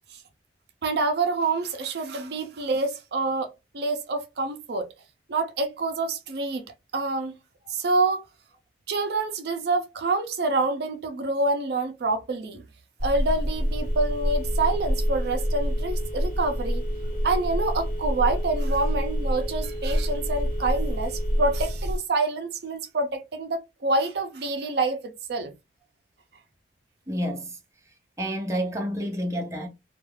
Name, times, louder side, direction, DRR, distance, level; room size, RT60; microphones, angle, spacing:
voice 1, 0.8-4.9 5.3-6.6 6.9-7.3 7.7-8.2 8.9-12.6 13.0-16.8 17.2-25.5, right 3 dB, 60° right, 0.4 m, -27 dB
Telephone, 13.0-22.0, equal, 45° left, 1.2 m, -27 dB
voice 2, 27.1-27.5 28.2-29.7, equal, 15° right, 0.6 m, -29 dB
2.3 x 2.2 x 3.1 m
head